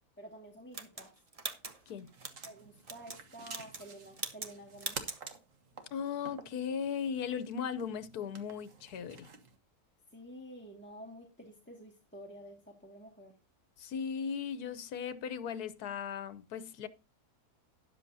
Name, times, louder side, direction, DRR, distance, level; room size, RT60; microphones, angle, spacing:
voice 1, 0.2-1.1 2.4-5.0 10.1-13.3, right 1 dB, 5° left, 1.8 m, -50 dB
sound 1, 0.7-2.5 2.8-3.2 3.5-3.9 4.2-4.5 4.8-5.2, right 3 dB, 25° right, 1.1 m, -41 dB
sound 2, 2.0-9.6, right 5 dB, 55° right, 1.7 m, -50 dB
voice 2, 5.9-9.3 13.8-16.9, left 7 dB, 75° left, 1.4 m, -37 dB
13.0 x 10.5 x 2.8 m
omnidirectional pair, 1.7 m